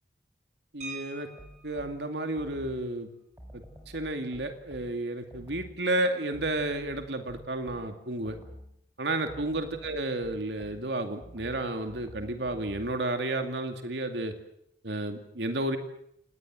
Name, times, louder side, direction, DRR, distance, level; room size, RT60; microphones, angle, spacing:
voice 1, 0.7-1.3 1.6-3.1 3.5-3.6 3.9-8.4 9.0-14.3 14.8-15.8, right 2 dB, 85° right, 6 dB, 2.5 m, -31 dB
sound 1, 0.8-1.9 3.3-3.5 3.8-4.0 4.4-4.7, right 2 dB, 45° right, 6.1 m, -44 dB
sound 2, 1.4-2.9 3.4-5.9 6.3-8.8 9.3-13.0, equal, 15° right, 4.7 m, -49 dB
28.5 x 19.0 x 7.7 m, 0.72 s
head